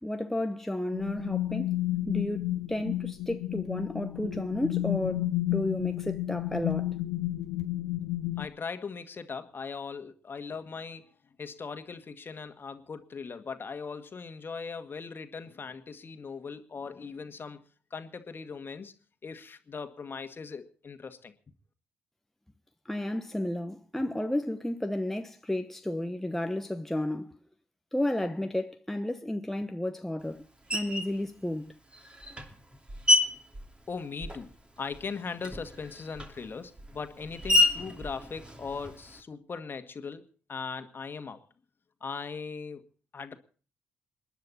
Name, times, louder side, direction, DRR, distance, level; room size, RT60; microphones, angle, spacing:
voice 1, 0.0-7.0 22.8-27.3 27.9-30.5 30.7-31.8, left 1 dB, 5° left, 1.1 m, -32 dB
sound 1, 0.9-8.5, left 15 dB, 70° left, 0.9 m, -31 dB
voice 2, 8.4-11.1 11.4-17.6 17.9-18.9 19.2-21.3 33.9-34.5 34.8-40.2 40.5-41.4 42.0-42.8 43.1-43.4, left 5 dB, 35° left, 1.9 m, -39 dB
Screech, 30.7-31.2 31.9-34.6 34.9-39.2, left 2 dB, 15° right, 2.9 m, -29 dB
28.0 x 10.5 x 4.2 m
figure-of-eight pair, 45°, 6 cm